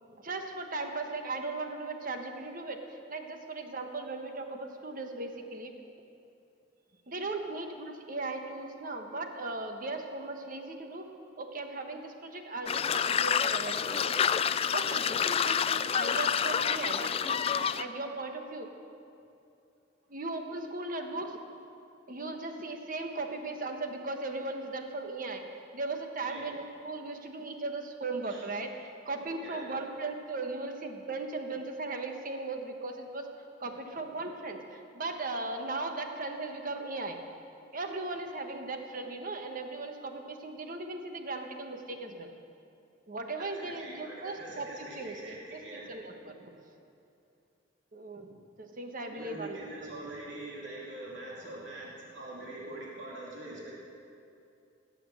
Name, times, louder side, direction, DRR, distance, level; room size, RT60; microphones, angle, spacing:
voice 1, 0.0-2.8 3.1-5.7 7.1-11.1 11.4-14.2 14.7-18.7 20.1-21.4 22.1-25.5 25.7-33.3 33.6-37.2 37.7-42.3 43.1-44.7 44.9-46.5 47.9-49.7, right 3 dB, 50° right, 5 dB, 1.3 m, -37 dB
sound 1, 12.7-17.8, left 7 dB, 30° left, 0.3 m, -28 dB
voice 2, 43.4-45.9 49.1-53.7, right 2 dB, 75° right, -4 dB, 2.8 m, -43 dB
18.5 x 7.9 x 7.7 m, 2.7 s
head